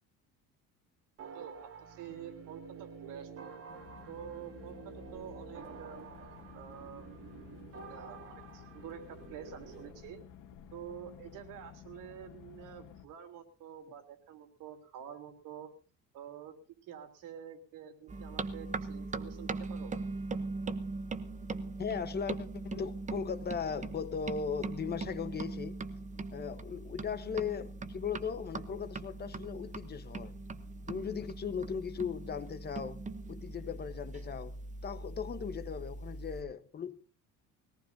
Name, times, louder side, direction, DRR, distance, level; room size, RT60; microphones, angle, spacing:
sound 1, 1.2-9.9, right 5 dB, 45° right, 2.4 m, -49 dB
voice 1, 1.2-6.1 6.5-7.1 7.9-10.2 10.7-15.7 16.1-16.5 16.8-20.0, right 9 dB, 80° right, 3.3 m, -48 dB
sound 2, 3.7-13.1, left 9 dB, 85° left, 1.8 m, -53 dB
sound 3, 18.1-36.4, right 3 dB, 25° right, 1.0 m, -41 dB
voice 2, 21.8-25.8 26.3-30.3 30.9-34.5 34.8-37.0, left 6 dB, 30° left, 1.1 m, -38 dB
22.0 x 18.0 x 2.7 m
cardioid pair, 145°, 32 cm